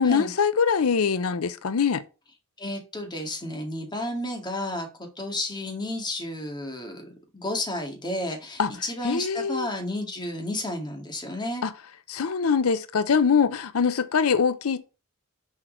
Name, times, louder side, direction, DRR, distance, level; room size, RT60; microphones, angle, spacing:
voice 1, 0.0-2.0 8.6-8.7 9.0-9.7 11.6-11.7 12.1-14.8, left 6 dB, 75° left, 0.6 m, -23 dB
voice 2, 2.6-11.6, left 1 dB, 20° left, 2.0 m, -32 dB
6.5 x 4.5 x 6.1 m
head